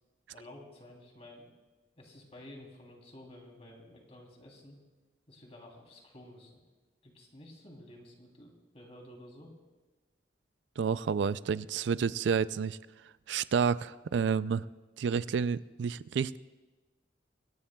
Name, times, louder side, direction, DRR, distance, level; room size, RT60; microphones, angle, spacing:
voice 1, 0.3-1.5 2.0-4.8 5.3-6.6 7.0-9.5, left 1 dB, 35° left, 0 dB, 3.1 m, -52 dB
voice 2, 10.8-12.8 13.3-14.7 15.0-16.4, right 6 dB, 80° right, 17 dB, 0.4 m, -30 dB
24.5 x 17.0 x 2.3 m, 1.2 s
head